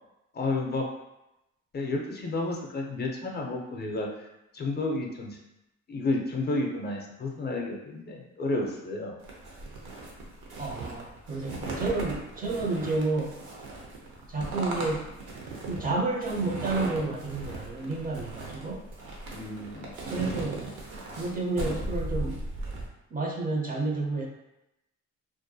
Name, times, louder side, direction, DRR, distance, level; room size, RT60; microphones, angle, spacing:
voice 1, 0.3-0.8 1.7-4.1 4.5-5.4 5.9-9.1 19.3-19.9, left 2 dB, 35° left, 0 dB, 0.4 m, -31 dB
sound 1, 9.2-22.9, right 2 dB, 85° right, 0.6 m, -37 dB
voice 2, 10.6-13.4 14.3-15.1 15.6-18.8 20.1-20.6 21.1-22.4 23.1-24.3, right 3 dB, 30° right, 0 dB, 0.4 m, -30 dB
2.4 x 2.1 x 2.6 m, 0.91 s
cardioid pair, 90°, 30 cm